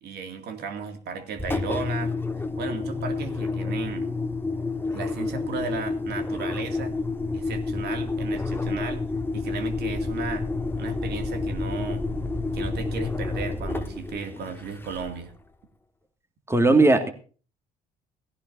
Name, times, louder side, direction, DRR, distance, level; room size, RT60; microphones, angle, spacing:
voice 1, 0.0-2.1 2.6-4.1 4.9-6.9 7.3-9.0 9.3-10.5 10.8-12.0 12.5-15.3, right 5 dB, 50° right, 6 dB, 2.4 m, -35 dB
Engine, 1.4-15.3, left 3 dB, 10° left, 1.5 m, -29 dB
voice 2, 16.5-17.1, right 2 dB, 10° right, 8 dB, 2.0 m, -17 dB
18.0 x 16.5 x 2.7 m, 0.38 s
figure-of-eight pair, 55°, 21 cm